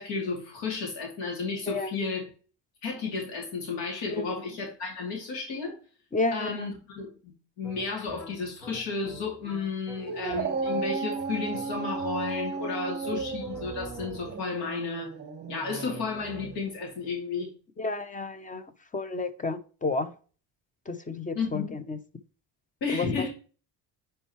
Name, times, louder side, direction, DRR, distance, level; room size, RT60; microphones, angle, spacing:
voice 1, 0.0-2.2 2.8-5.8 6.3-15.2 15.5-17.5 21.3-21.7 22.8-23.3, left 4 dB, 75° left, 2.8 m, -33 dB
voice 2, 6.1-6.7 12.6-12.7 17.8-18.6 18.9-20.1 20.9-22.0 22.9-23.3, left 3 dB, 20° left, 0.7 m, -31 dB
sound 1, 7.6-12.6 13.0-14.5, equal, 50° left, 3.7 m, -47 dB
Dog, 10.0-16.6, right 4 dB, 25° right, 0.9 m, -34 dB
8.7 x 4.5 x 3.0 m
cardioid pair, 130°, 42 cm